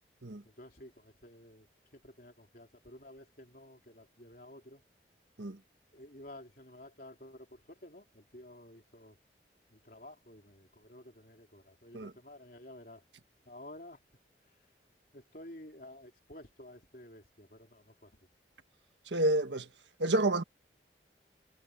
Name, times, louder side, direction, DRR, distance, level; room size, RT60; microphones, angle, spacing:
voice 1, 0.4-1.7 1.9-4.8 5.9-9.2 9.7-13.0 13.4-14.0 15.1-18.1, left 1 dB, 50° left, 3.5 m, -52 dB
voice 2, 19.1-19.7 20.0-20.4, right 1 dB, 85° right, 1.6 m, -29 dB
head